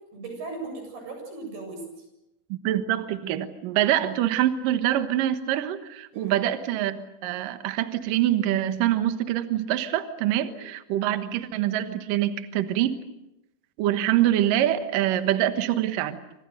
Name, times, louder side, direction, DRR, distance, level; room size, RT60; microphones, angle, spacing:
voice 1, 0.0-2.1 6.1-6.4 10.4-10.6, right 3 dB, 50° right, 4 dB, 9.3 m, -38 dB
voice 2, 2.5-13.0 13.8-16.2, right 12 dB, 85° right, 9 dB, 1.9 m, -25 dB
29.0 x 26.0 x 6.6 m, 0.88 s
omnidirectional pair, 6.0 m